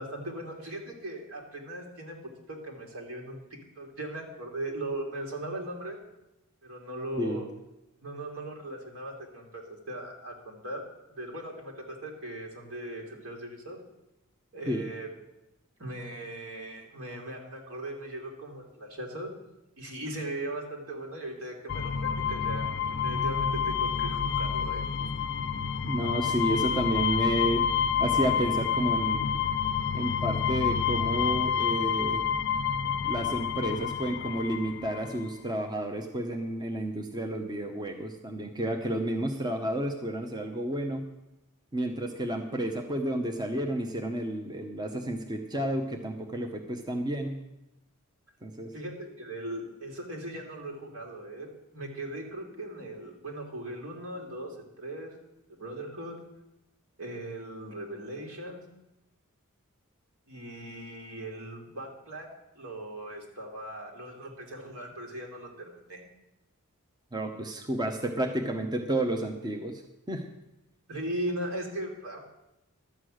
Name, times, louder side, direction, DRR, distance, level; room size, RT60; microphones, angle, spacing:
voice 1, 0.0-2.2 2.5-3.4 3.8-6.0 6.6-7.5 8.0-10.8 11.1-13.8 14.5-15.1 15.8-19.3 19.8-22.6 23.0-24.8 48.7-51.5 51.7-55.1 55.6-56.2 57.0-58.6 60.3-62.3 62.5-66.0 70.9-72.2, right 1 dB, 70° right, 1 dB, 2.7 m, -38 dB
sound 1, 21.7-35.1, left 7 dB, 55° left, 0.5 m, -28 dB
voice 2, 25.8-27.7 28.0-29.3 29.9-32.2 33.0-41.0 41.7-47.3 48.4-48.7 67.1-69.8 70.1-70.3, right 1 dB, 20° right, 3 dB, 0.8 m, -31 dB
12.0 x 8.2 x 6.3 m, 0.92 s
head